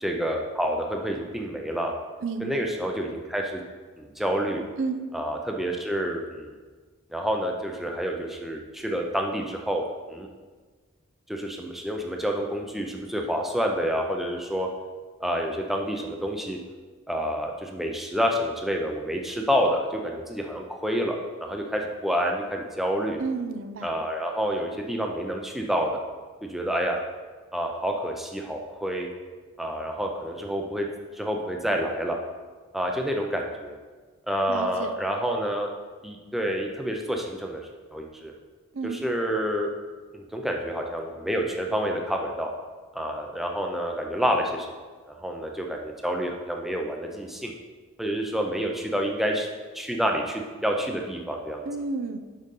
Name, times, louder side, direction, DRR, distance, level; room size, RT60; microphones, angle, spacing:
voice 1, 0.0-1.9 2.4-3.6 4.0-4.6 5.1-6.5 7.1-10.3 11.3-14.7 15.2-16.6 17.1-23.2 23.8-26.0 26.4-27.0 27.5-29.1 29.6-30.9 31.2-32.2 32.7-33.8 34.3-35.7 36.0-37.6 37.9-38.3 38.8-39.7 40.1-42.5 42.9-44.7 45.1-47.5 48.0-49.5 49.7-51.7, equal, ahead, 1 dB, 0.5 m, -28 dB
voice 2, 2.2-2.7 4.8-5.0 23.2-23.9 34.5-34.9 38.7-39.0 51.6-52.2, right 4 dB, 65° right, 8 dB, 0.5 m, -31 dB
6.6 x 5.1 x 5.4 m, 1.4 s
head